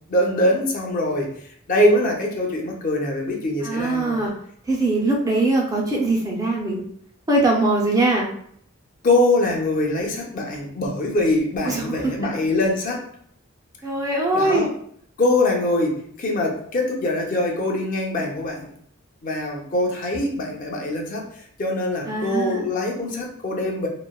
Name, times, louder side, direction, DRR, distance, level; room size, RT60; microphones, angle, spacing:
voice 1, 0.1-1.3 1.7-4.2 9.0-13.1 14.3-14.7 15.2-18.7 19.2-23.9, left 1 dB, 40° left, 0 dB, 0.5 m, -23 dB
voice 2, 3.6-4.3 4.7-6.8 7.3-8.3 11.7-12.1 13.8-14.7 22.1-22.6, right 2 dB, 15° right, -1 dB, 0.4 m, -21 dB
2.9 x 2.1 x 2.2 m, 0.64 s
head